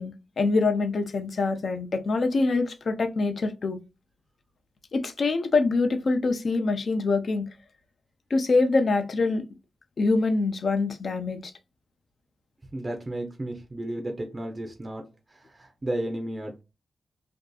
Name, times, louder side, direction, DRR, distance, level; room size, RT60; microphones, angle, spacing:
voice 1, 0.0-3.8 4.9-7.5 8.3-9.4 10.0-11.5, left 3 dB, 60° left, 0.5 m, -25 dB
voice 2, 12.7-15.0 15.5-16.6, right 1 dB, 30° right, 0.5 m, -33 dB
2.6 x 2.4 x 2.2 m
cardioid pair, 85°, 0 cm